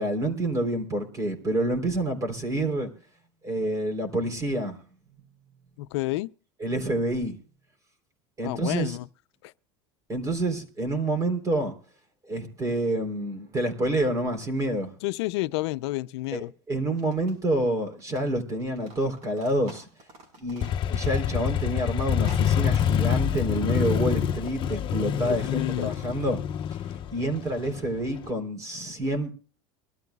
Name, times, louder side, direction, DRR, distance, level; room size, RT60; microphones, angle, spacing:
voice 1, 0.0-2.9 3.4-4.8 6.6-7.4 8.4-9.0 10.1-11.7 12.3-14.9 16.3-19.9 20.4-26.4 27.1-29.3, right 1 dB, 25° right, 3.7 m, -28 dB
voice 2, 5.8-6.3 8.4-9.1 9.4-9.5 15.0-16.5 25.1-26.0, left 18 dB, 85° left, 0.6 m, -30 dB
sound 1, 16.2-16.3 16.8-18.3 18.5-21.2 21.5-21.6 22.2-22.5, right 2 dB, 55° right, 6.1 m, -50 dB
Motorcycle, 20.6-28.2, left 9 dB, 35° left, 1.0 m, -26 dB
23.5 x 13.5 x 2.4 m
supercardioid pair, 130°, 14 cm